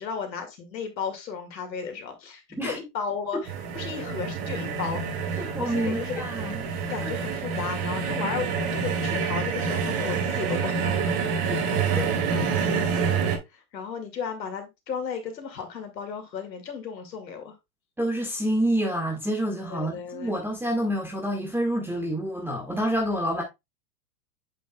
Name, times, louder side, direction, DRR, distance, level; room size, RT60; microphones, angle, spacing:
voice 1, 0.0-6.2 6.5-11.1 13.5-17.6 19.7-20.4, left 6 dB, 85° left, 2.2 m, -34 dB
sound 1, 3.4-13.4, right 5 dB, 55° right, 2.4 m, -27 dB
voice 2, 5.4-6.6 7.0-7.1 11.5-11.6 18.0-23.4, right 1 dB, 5° right, 1.6 m, -28 dB
8.2 x 6.1 x 2.3 m
hypercardioid pair, 115°, 50 cm